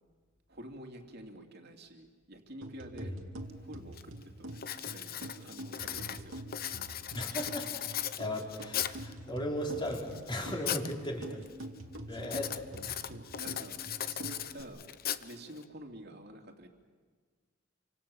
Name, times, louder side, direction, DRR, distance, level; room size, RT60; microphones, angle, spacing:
voice 1, 0.5-3.2 3.6-6.3 12.1-12.4 13.0-13.8 14.1-14.8 15.2-16.7, right 1 dB, 55° right, 3 dB, 3.0 m, -49 dB
sound 1, 2.6-14.6, right 1 dB, 80° right, 2.5 m, -46 dB
Writing, 3.4-3.5 4.0-4.2 4.6-9.1 9.7-10.9 11.2-11.6 12.2-15.6, left 10 dB, 50° left, 0.9 m, -38 dB
voice 2, 7.1-11.5 12.1-13.0, equal, 25° left, 0 dB, 4.2 m, -37 dB
28.0 x 25.5 x 7.2 m, 1.5 s
head